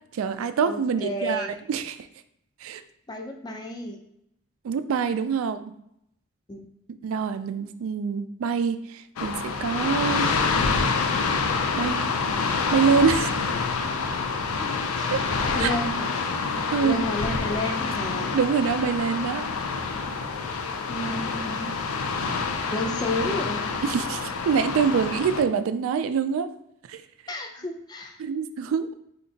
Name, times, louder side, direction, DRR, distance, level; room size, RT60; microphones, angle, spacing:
voice 1, 0.1-2.1 2.6-2.8 4.6-5.6 7.0-10.3 11.8-12.0 12.7-13.4 15.1-15.2 15.6-15.8 16.7-17.0 18.3-19.4 23.8-26.5 26.9-27.0 28.2-28.9, right 6 dB, 75° right, 10 dB, 0.3 m, -25 dB
voice 2, 0.7-1.5 3.1-4.0 6.5-6.6 14.6-15.1 15.5-16.1 16.8-18.4 20.9-21.7 22.7-23.6 27.3-28.2, left 1 dB, 20° left, 3 dB, 0.4 m, -31 dB
sound 1, 9.2-25.4, left 4 dB, 85° left, 0.4 m, -27 dB
4.2 x 2.8 x 2.7 m, 0.75 s
head